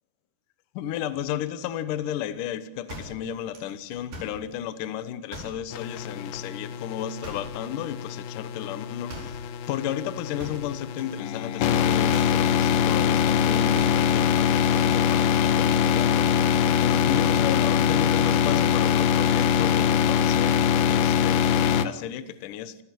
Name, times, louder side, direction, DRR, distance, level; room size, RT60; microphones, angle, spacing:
voice 1, 0.7-16.3 16.8-22.8, left 10 dB, 70° left, 12 dB, 2.5 m, -33 dB
sound 1, 2.9-4.5 5.3-5.7 7.2-7.6 9.1-9.5 10.4-11.2 11.4-11.7 12.0-12.4 13.7-14.1, equal, 65° right, 6.3 m, -41 dB
sound 2, 5.7-21.9, left 8 dB, 85° left, 3.0 m, -23 dB
27.5 x 15.0 x 7.6 m, 0.84 s
omnidirectional pair, 4.2 m